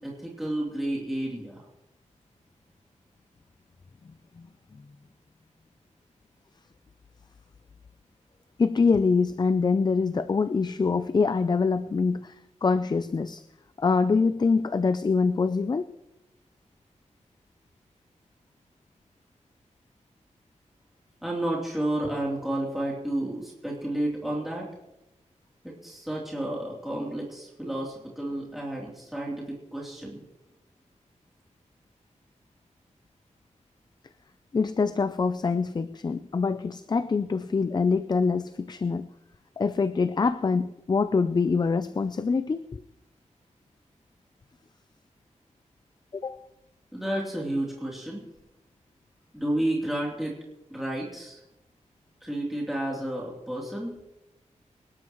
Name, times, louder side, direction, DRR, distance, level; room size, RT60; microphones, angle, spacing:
voice 1, 0.0-1.6 21.2-24.7 25.6-30.2 46.9-48.2 49.3-50.4 50.7-51.4 52.2-54.0, right 1 dB, ahead, 3.1 m, -31 dB
voice 2, 8.6-12.4 12.6-13.4 13.8-15.9 34.5-39.1 39.6-42.8 46.1-46.5, left 4 dB, 35° left, 0.4 m, -25 dB
25.0 x 12.0 x 3.1 m
wide cardioid pair, 110°, 13 cm